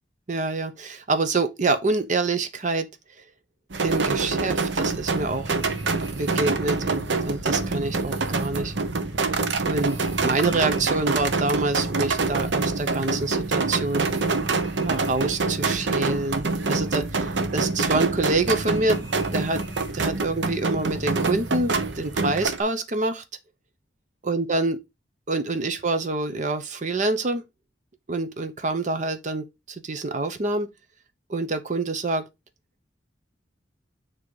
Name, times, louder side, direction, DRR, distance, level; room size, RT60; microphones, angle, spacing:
voice 1, 0.3-2.9 3.8-5.5 6.2-8.7 9.6-10.0 10.2-14.1 14.8-19.6 19.9-23.2 24.2-24.8 25.3-27.4 28.1-30.7 31.3-32.2, right 3 dB, 45° right, 0.7 m, -26 dB
sound 1, 3.7-22.6, right 3 dB, 90° right, 0.9 m, -26 dB
sound 2, 5.0-22.4, right 1 dB, 15° right, 1.8 m, -39 dB
7.3 x 2.9 x 4.6 m
head